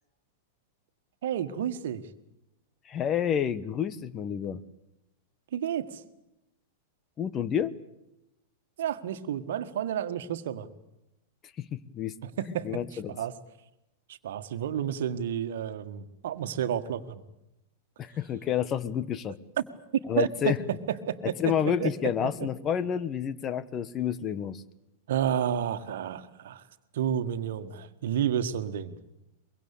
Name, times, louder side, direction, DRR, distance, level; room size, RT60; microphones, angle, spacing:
voice 1, 1.2-2.0 5.5-6.0 8.8-10.7 12.2-13.3 14.1-17.2 19.6-19.7 20.2-20.5 21.1-21.5 21.8-21.9 25.1-26.6 26.9-29.0, right 9 dB, 65° right, 10 dB, 1.7 m, -31 dB
voice 2, 2.9-4.6 7.2-7.7 11.6-12.1 12.6-13.1 18.0-19.4 20.1-20.6 21.2-24.6, left 9 dB, 30° left, 16 dB, 1.2 m, -29 dB
23.5 x 23.0 x 8.5 m, 0.89 s
figure-of-eight pair, 95°, 0 cm